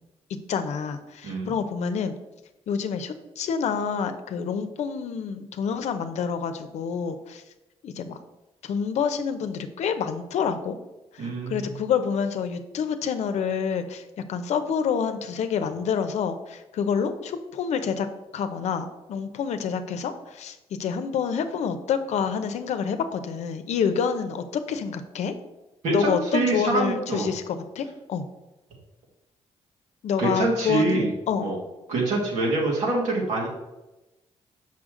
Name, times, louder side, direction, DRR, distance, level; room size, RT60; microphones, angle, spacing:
voice 1, 0.5-2.1 2.7-7.4 7.8-8.2 8.6-10.8 11.1-18.1 18.3-25.3 25.9-28.2 30.0-31.5, left 6 dB, 75° left, 9 dB, 0.7 m, -28 dB
voice 2, 1.2-1.5 11.2-11.7 25.8-27.3 30.2-31.1 31.4-31.6 31.9-33.5, right 2 dB, 90° right, -2 dB, 2.0 m, -25 dB
6.4 x 5.6 x 3.8 m, 1.0 s
cardioid pair, 80°, 12 cm